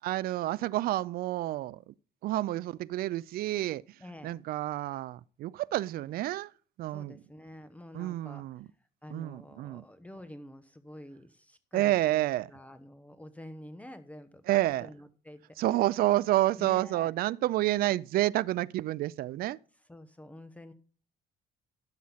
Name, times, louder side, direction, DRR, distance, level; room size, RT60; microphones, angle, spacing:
voice 1, 0.0-1.8 2.2-3.8 4.2-6.5 6.8-7.1 7.9-8.6 9.1-9.8 11.7-12.5 14.5-14.9 15.6-19.6, right 15 dB, 60° right, 0.4 m, -29 dB
voice 2, 4.0-4.4 6.9-8.6 9.0-16.0 16.6-17.1 19.7-20.7, left 1 dB, 10° left, 0.9 m, -48 dB
11.5 x 7.5 x 5.6 m
cardioid pair, 110°, 17 cm